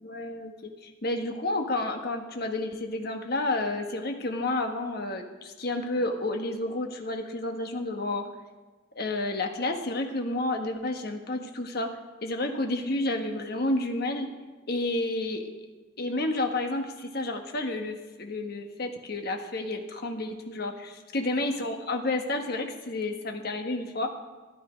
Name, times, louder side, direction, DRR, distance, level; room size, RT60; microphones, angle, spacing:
voice 1, 0.0-8.3 8.9-11.9 12.2-14.3 14.7-15.5 16.0-24.1, left 2 dB, 55° left, 4 dB, 1.3 m, -30 dB
12.5 x 11.5 x 5.1 m, 1.3 s
head